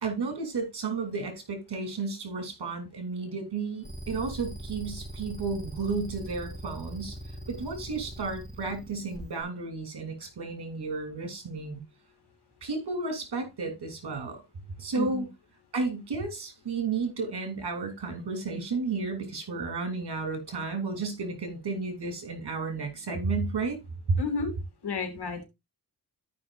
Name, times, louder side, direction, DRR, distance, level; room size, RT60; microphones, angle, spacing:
voice 1, 0.0-7.2 7.5-11.8 12.6-14.4 14.8-15.3 15.7-23.8, right 4 dB, 65° right, 3.1 m, -33 dB
sound 1, 3.8-9.4, right 1 dB, ahead, 4.3 m, -41 dB
voice 2, 14.9-15.3 24.2-24.5 24.8-25.5, left 4 dB, 65° left, 2.7 m, -31 dB
13.5 x 5.6 x 2.5 m
cardioid pair, 55°, 42 cm